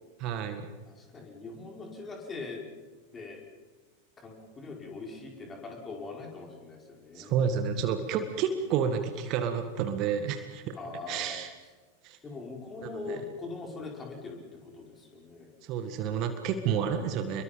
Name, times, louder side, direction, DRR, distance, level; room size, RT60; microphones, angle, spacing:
voice 1, 0.2-0.7 7.1-10.8 11.1-11.5 12.0-12.2 12.8-13.2 15.6-17.4, right 7 dB, 40° right, 8 dB, 1.8 m, -30 dB
voice 2, 0.9-2.7 3.1-3.4 4.2-7.3 10.7-11.4 12.2-15.5, left 3 dB, 20° left, 1 dB, 5.2 m, -41 dB
29.5 x 22.5 x 5.4 m, 1.3 s
figure-of-eight pair, 90°, 0 cm